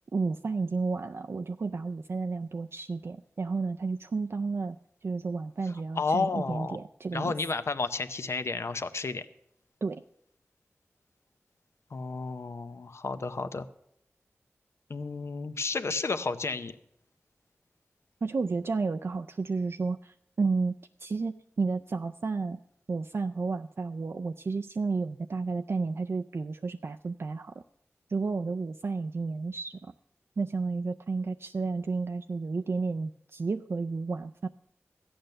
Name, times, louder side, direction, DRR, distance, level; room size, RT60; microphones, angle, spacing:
voice 1, 0.1-4.8 5.0-7.3 9.8-10.0 18.2-20.7 21.0-22.6 22.9-27.5 28.1-29.9 30.4-34.5, right 4 dB, 60° right, 7 dB, 0.4 m, -32 dB
voice 2, 5.7-6.8 7.1-9.3 11.9-13.7 14.9-16.8, left 4 dB, 70° left, 11 dB, 0.7 m, -32 dB
13.5 x 8.8 x 6.6 m, 0.76 s
wide cardioid pair, 55°, 5 cm